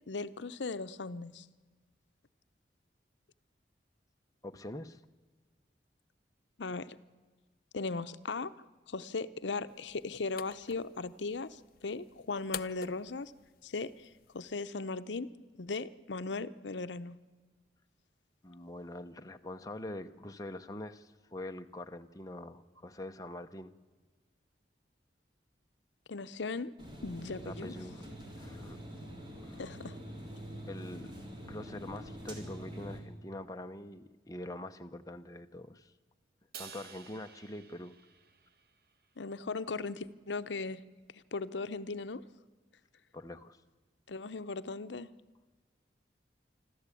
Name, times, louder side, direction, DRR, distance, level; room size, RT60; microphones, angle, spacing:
voice 1, 0.1-1.5 6.6-7.0 7.7-8.5 8.9-13.3 13.6-15.3 15.6-17.2 26.1-26.7 27.0-27.7 29.6-30.0 39.2-40.8 41.1-42.2 44.1-45.1, left 3 dB, 85° left, 13 dB, 0.8 m, -38 dB
voice 2, 4.4-5.0 18.4-23.7 27.4-28.0 28.4-28.8 29.4-29.6 30.7-31.1 31.5-35.9 36.6-37.9 43.1-43.6, left 1 dB, 20° left, 6 dB, 0.8 m, -44 dB
sound 1, 9.7-14.7, left 9 dB, 50° left, 0.6 m, -49 dB
sound 2, 26.8-33.0, equal, 25° right, 3.7 m, -45 dB
Crash cymbal, 36.5-38.9, right 7 dB, 55° right, 1.4 m, -51 dB
25.5 x 13.5 x 8.4 m, 1.3 s
head